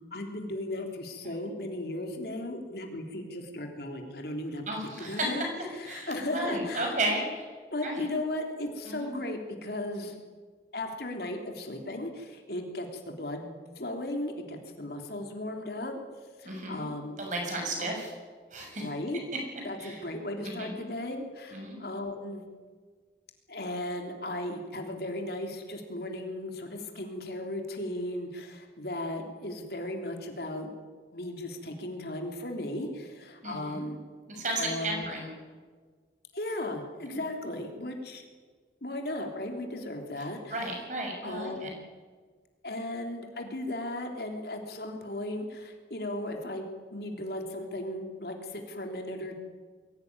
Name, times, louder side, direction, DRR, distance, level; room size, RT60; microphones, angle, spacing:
voice 1, 0.1-4.6 5.0-5.4 5.8-7.0 7.7-10.1 10.7-16.0 16.4-17.2 17.8-17.9 18.7-19.2 19.6-22.4 23.5-30.7 31.1-34.0 34.6-35.1 36.3-38.2 38.8-40.6 41.2-41.7 42.6-49.4, left 1 dB, 65° left, 3 dB, 3.3 m, -36 dB
voice 2, 4.7-5.3 5.9-7.5 7.8-8.0 8.8-9.1 16.4-16.8 17.2-18.1 18.5-18.9 19.8-20.0 20.6-20.8 21.5-21.8 33.4-33.9 34.3-35.3 37.0-37.2 40.5-41.7, right 1 dB, 45° right, 1 dB, 6.9 m, -33 dB
22.5 x 17.5 x 9.7 m, 1.5 s
head